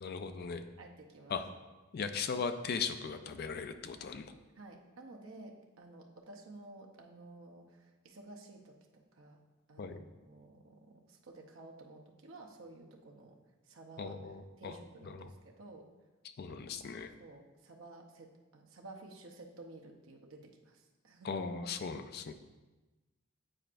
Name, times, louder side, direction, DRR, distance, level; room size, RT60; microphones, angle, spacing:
voice 1, 0.0-0.6 1.3-1.4 1.9-4.3 9.8-10.0 14.0-14.7 15.0-15.3 16.4-17.1 21.2-22.3, left 5 dB, 50° left, 9 dB, 0.4 m, -38 dB
voice 2, 0.8-1.4 4.6-9.4 9.7-13.4 13.7-14.2 14.6-15.8 16.5-16.9 17.2-21.4, right 2 dB, 80° right, 1 dB, 0.7 m, -53 dB
8.8 x 4.4 x 2.5 m, 1.2 s
head